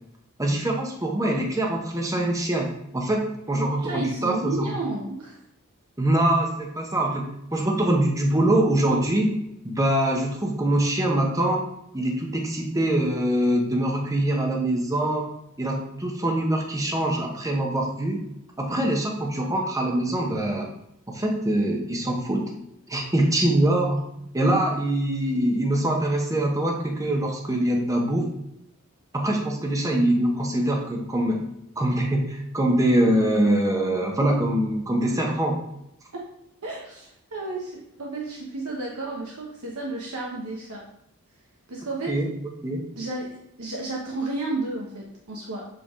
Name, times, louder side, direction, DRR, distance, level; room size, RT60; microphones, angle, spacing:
voice 1, 0.4-4.7 6.0-9.3 9.6-11.6 11.9-15.3 15.6-18.3 18.6-20.7 21.1-22.5 22.9-24.1 24.3-28.3 29.1-31.4 31.8-35.6 42.1-42.3 42.6-42.8, right 1 dB, 15° right, 0 dB, 0.9 m, -24 dB
voice 2, 3.5-5.4 36.1-36.2 36.6-40.9 41.7-42.2 43.0-45.7, right 2 dB, 80° right, -2 dB, 1.0 m, -32 dB
7.7 x 3.5 x 3.6 m, 0.81 s
head